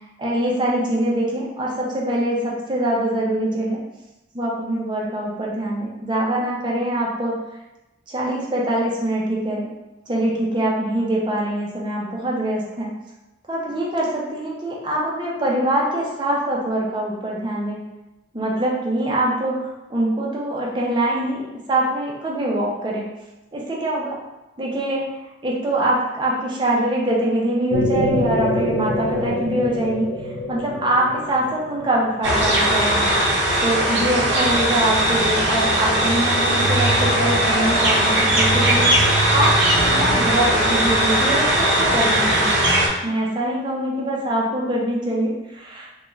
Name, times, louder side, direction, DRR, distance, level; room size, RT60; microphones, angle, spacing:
voice 1, 0.2-3.8 4.3-7.3 8.1-9.7 10.1-12.9 13.5-17.8 18.3-23.1 23.5-24.2 24.6-25.1 25.4-38.9 39.3-42.5 43.0-45.9, right 1 dB, 25° right, -4 dB, 0.5 m, -23 dB
sound 1, 27.7-32.8, left 1 dB, 90° left, 0.4 m, -25 dB
sound 2, 32.2-42.9, right 1 dB, 80° right, 0.6 m, -19 dB
2.4 x 2.2 x 3.0 m, 0.99 s
head